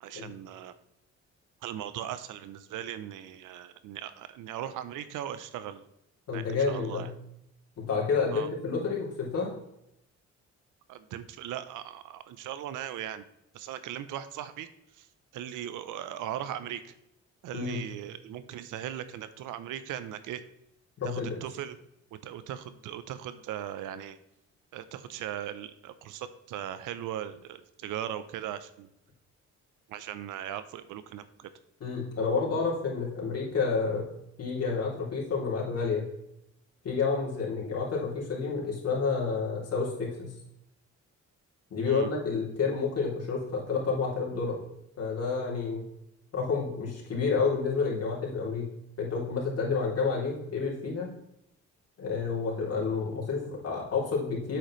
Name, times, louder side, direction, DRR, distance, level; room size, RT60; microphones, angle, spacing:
voice 1, 0.0-0.7 1.6-5.8 6.3-7.1 8.3-8.5 10.9-13.2 13.5-15.1 15.3-16.9 17.4-20.4 21.0-21.8 22.1-24.2 24.7-28.9 29.9-31.5 41.8-42.1, right 11 dB, 85° right, 13 dB, 0.7 m, -38 dB
voice 2, 6.3-7.1 7.8-9.5 17.5-17.8 21.0-21.4 31.8-34.1 34.4-36.1 36.8-40.3 41.7-44.6 45.0-45.8 46.3-48.7 49.0-51.1 52.0-54.6, left 4 dB, 55° left, -3 dB, 3.0 m, -29 dB
8.6 x 7.9 x 3.1 m, 0.82 s
cardioid pair, 90°, 30 cm